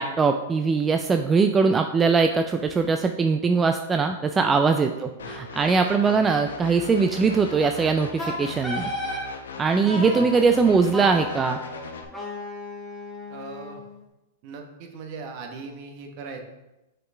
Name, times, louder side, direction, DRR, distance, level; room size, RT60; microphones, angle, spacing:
voice 1, 0.0-8.9 9.6-11.6, right 4 dB, 15° right, 6 dB, 0.3 m, -21 dB
voice 2, 4.9-5.3 5.9-6.2 9.8-10.4 13.3-13.8 14.4-16.4, right 4 dB, 50° right, 4 dB, 1.1 m, -40 dB
sound 1, 5.2-12.0, left 4 dB, 85° left, 0.8 m, -39 dB
Wind instrument woodwind instrument, 8.2-9.3 9.9-10.3 10.9-13.9, left 1 dB, 5° left, 1.5 m, -34 dB
6.3 x 4.5 x 3.3 m, 0.97 s
hypercardioid pair, 120°, 0 cm